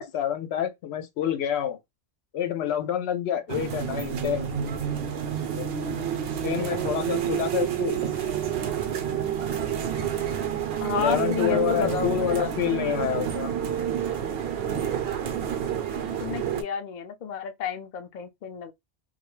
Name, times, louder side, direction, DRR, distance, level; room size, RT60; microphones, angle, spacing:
voice 1, 0.0-1.8 2.3-4.5 5.5-5.7 6.4-8.0 11.0-13.6, left 10 dB, 90° left, 0.8 m, -28 dB
sound 1, 3.5-16.6, right 9 dB, 70° right, 0.8 m, -29 dB
voice 2, 10.8-12.5 16.0-18.7, left 7 dB, 55° left, 0.6 m, -32 dB
2.3 x 2.1 x 3.0 m
omnidirectional pair, 1.1 m